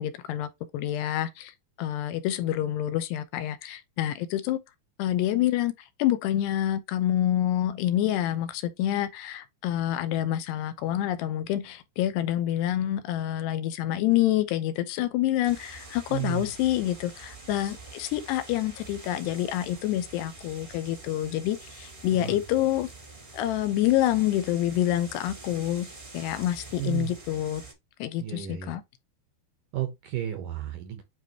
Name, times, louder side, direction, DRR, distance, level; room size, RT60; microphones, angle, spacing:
voice 1, 0.0-1.5 1.8-4.6 5.0-5.7 6.0-22.9 23.3-27.6 28.0-28.8, left 13 dB, 80° left, 2.9 m, -27 dB
sound 1, 15.4-27.7, right 3 dB, 30° right, 0.9 m, -46 dB
voice 2, 16.1-16.5 22.1-22.4 26.8-27.1 28.2-28.7 29.7-31.0, right 12 dB, 70° right, 2.1 m, -32 dB
9.3 x 3.4 x 3.0 m
omnidirectional pair, 4.9 m